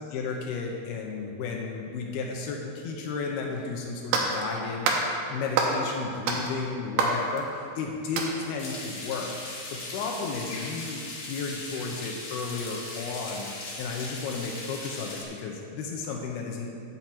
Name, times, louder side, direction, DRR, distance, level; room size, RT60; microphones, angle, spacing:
voice 1, 0.0-16.8, left 4 dB, 90° left, 0 dB, 2.2 m, -34 dB
sound 1, 3.5-3.6 4.1-4.5 4.9-5.1 5.6-5.9 6.3-7.8 8.2-8.5, right 4 dB, 80° right, 3.4 m, -27 dB
sound 2, 8.6-15.2, left 2 dB, 50° left, 2.2 m, -38 dB
8.0 x 5.8 x 7.5 m, 2.6 s
omnidirectional pair, 5.4 m